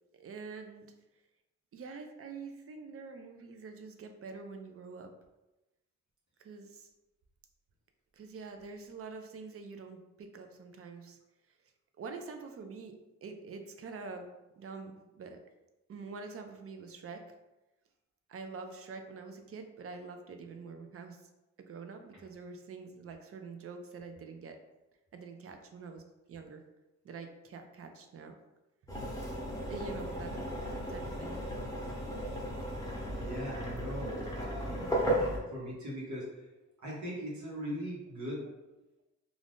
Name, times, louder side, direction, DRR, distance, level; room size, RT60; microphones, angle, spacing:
voice 1, 0.1-0.9 1.7-5.1 6.4-6.9 8.1-11.2 12.0-14.3 14.6-15.4 15.9-17.2 18.3-21.3 21.6-24.6 25.1-26.0 26.3-26.6 27.0-28.4 29.7-30.3 30.9-31.4 31.8-32.0, right 4 dB, 50° right, 5 dB, 0.4 m, -46 dB
sound 1, 28.9-35.4, right 1 dB, 10° left, 0.8 m, -35 dB
voice 2, 32.9-34.9 35.5-36.5 36.8-38.4, equal, 75° right, -4 dB, 1.1 m, -40 dB
2.5 x 2.4 x 3.5 m, 0.99 s
cardioid pair, 100°, 29 cm